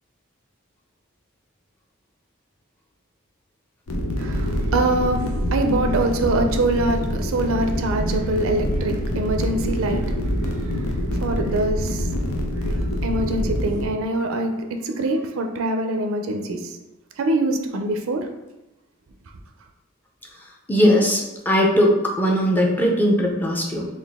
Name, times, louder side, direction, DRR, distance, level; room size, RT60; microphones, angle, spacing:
sound 1, 3.9-13.9, equal, 85° left, 0.6 m, -25 dB
voice 1, 4.2-10.0 10.6-10.8 11.2-12.1 13.0-16.7 17.2-18.3, right 2 dB, 70° right, 5 dB, 0.4 m, -24 dB
voice 2, 20.7-23.9, equal, 10° left, -1 dB, 0.5 m, -19 dB
3.9 x 2.4 x 3.5 m, 0.99 s
head